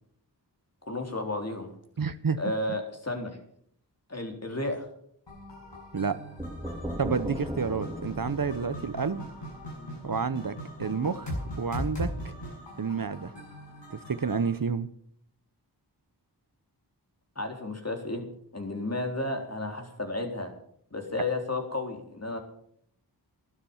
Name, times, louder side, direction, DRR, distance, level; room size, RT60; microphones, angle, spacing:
voice 1, 0.8-1.7 2.4-3.4 4.1-4.9 17.4-18.3 18.5-20.5 20.9-22.4, left 2 dB, 35° left, 3 dB, 3.8 m, -32 dB
voice 2, 2.0-2.4 5.9-6.2 7.0-9.3 10.0-12.3 12.8-13.3 13.9-14.9, right 5 dB, 55° right, 13 dB, 0.9 m, -30 dB
sound 1, 5.3-14.5, equal, 85° left, 7.6 m, -39 dB
sound 2, 6.4-10.1, equal, 5° right, 1.9 m, -38 dB
12.5 x 12.0 x 7.2 m, 0.65 s
wide cardioid pair, 40°, 42 cm